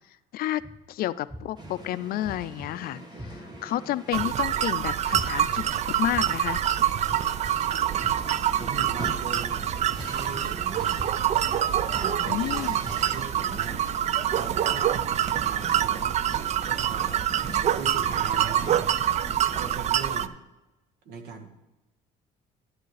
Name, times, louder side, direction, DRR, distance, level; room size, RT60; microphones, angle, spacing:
sound 1, 0.6-0.7 1.3-1.7 2.2-2.7 3.2-3.6 4.1-4.6 5.1-5.5 6.1-6.6 7.1-7.5 8.0-8.4 9.0-9.4 10.0-10.4 10.9-11.4 11.9-12.3 12.8-13.2, equal, 5° left, 0.9 m, -40 dB
voice 1, 0.9-5.6 6.0-6.6 12.3-12.9, left 13 dB, 60° left, 16 dB, 0.4 m, -30 dB
sound 2, 1.6-19.8, right 2 dB, 25° right, 1.3 m, -43 dB
sound 3, 4.1-20.3, right 10 dB, 40° right, 0.4 m, -26 dB
voice 2, 8.5-11.1 11.9-15.1 15.5-16.1 16.6-17.2 17.7-18.9 19.6-20.4 21.0-21.5, right 5 dB, 80° right, 6 dB, 1.3 m, -40 dB
11.0 x 9.3 x 3.2 m, 1.0 s
cardioid pair, 110°, 17 cm